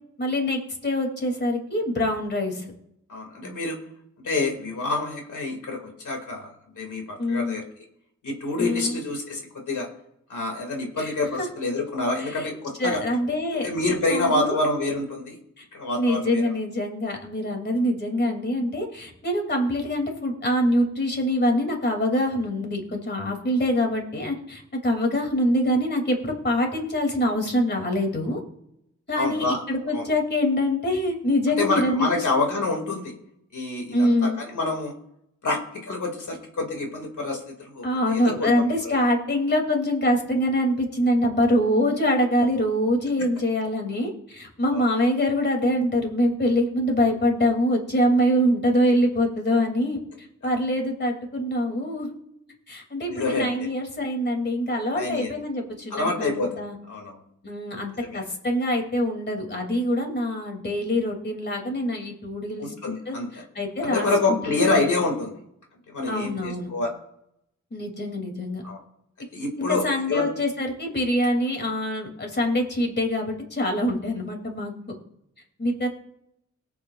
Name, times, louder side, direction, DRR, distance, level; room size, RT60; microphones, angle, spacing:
voice 1, 0.2-2.6 7.2-7.5 8.6-9.0 11.0-11.5 12.2-12.5 12.8-13.7 14.1-14.6 15.6-15.7 16.0-28.4 29.1-32.1 33.9-34.4 37.8-50.0 50.4-52.1 52.7-56.8 57.4-62.7 63.1-64.9 66.1-66.7 67.7-68.6 69.6-74.7 75.6-75.9, left 1 dB, 35° left, 2 dB, 2.5 m, -24 dB
voice 2, 3.1-3.8 4.2-7.6 8.2-9.9 10.3-13.0 13.5-15.4 15.7-16.5 29.2-29.6 29.9-30.0 31.6-33.1 33.5-34.9 35.4-39.0 43.2-43.3 44.7-44.8 53.1-53.5 54.9-55.3 55.9-57.2 58.0-58.2 62.6-63.4 63.8-65.3 65.9-66.9 68.6-68.8 69.3-70.3, left 2 dB, 90° left, 2 dB, 2.1 m, -27 dB
22.5 x 8.5 x 2.4 m, 0.77 s
wide cardioid pair, 125°, 29 cm